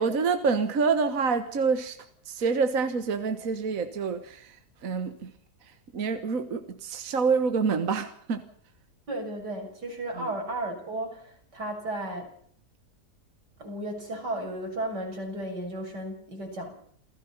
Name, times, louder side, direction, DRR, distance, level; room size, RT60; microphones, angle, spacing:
voice 1, 0.0-2.0 2.3-5.3 5.6-8.5 10.1-10.3, right 5 dB, 55° right, 8 dB, 1.8 m, -27 dB
voice 2, 9.1-12.3 13.6-16.8, right 1 dB, 90° right, 2 dB, 7.4 m, -34 dB
28.5 x 17.0 x 5.6 m, 0.63 s
omnidirectional pair, 1.8 m